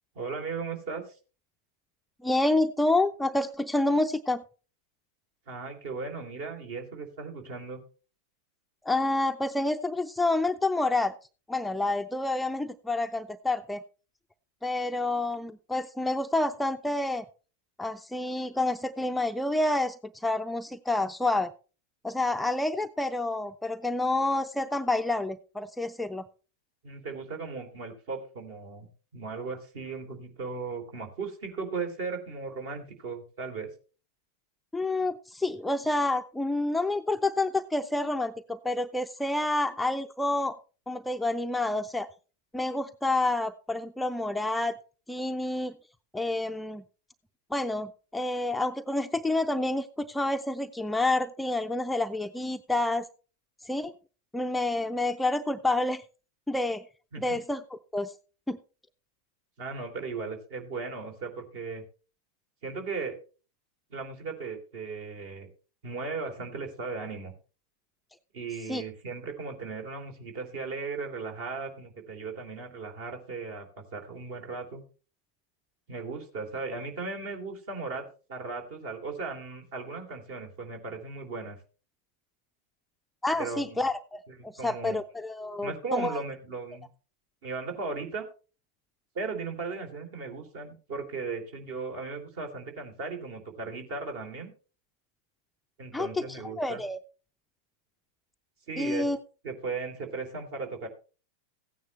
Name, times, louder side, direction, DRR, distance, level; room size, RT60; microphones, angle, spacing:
voice 1, 0.1-1.0 5.5-7.8 26.8-33.7 57.1-57.4 59.6-61.8 62.6-63.2 63.9-65.5 65.8-67.3 68.3-74.8 75.9-78.0 78.3-81.6 83.3-83.8 84.3-85.0 85.6-86.9 87.4-88.3 89.1-94.5 95.8-96.8 98.7-99.1 99.4-100.9, right 4 dB, 50° right, 4 dB, 3.1 m, -37 dB
voice 2, 2.2-4.4 8.9-11.2 11.5-13.8 14.6-17.2 17.8-21.5 22.0-26.3 34.7-40.6 40.9-42.1 42.5-44.8 45.1-45.7 46.1-46.8 47.5-53.1 53.6-53.9 54.3-56.0 56.5-56.8 57.2-58.1 58.5-58.6 68.7-68.8 83.2-86.2 95.9-97.0 98.8-99.2, left 2 dB, 5° left, 8 dB, 0.5 m, -28 dB
15.5 x 9.4 x 3.2 m, 0.36 s
figure-of-eight pair, 90°, 0 cm